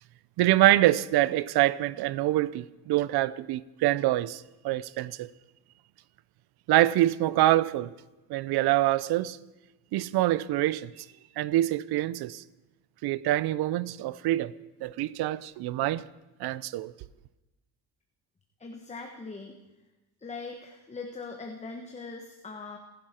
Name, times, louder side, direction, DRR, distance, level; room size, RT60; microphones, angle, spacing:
voice 1, 0.4-5.3 6.7-7.9 8.3-9.4 9.9-11.1 11.4-12.4 13.0-14.5 14.8-16.0 16.4-16.9, right 15 dB, 75° right, 0.7 m, -25 dB
voice 2, 18.6-19.6 20.2-22.8, left 4 dB, 15° left, 1.3 m, -41 dB
27.5 x 11.0 x 4.4 m
cardioid pair, 130°, 39 cm